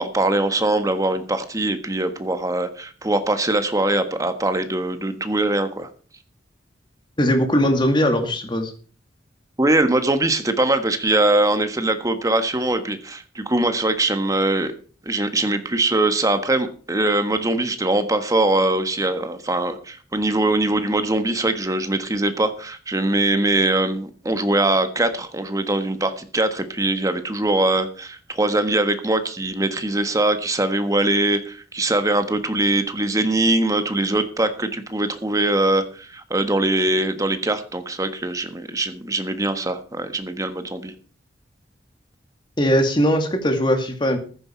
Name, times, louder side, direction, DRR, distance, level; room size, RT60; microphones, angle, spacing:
voice 1, 0.0-5.9 9.6-14.7 15.0-40.9, right 2 dB, 20° right, 9 dB, 1.4 m, -22 dB
voice 2, 7.2-8.7 42.6-44.2, equal, 25° left, 5 dB, 2.3 m, -19 dB
14.5 x 9.9 x 4.5 m, 0.40 s
head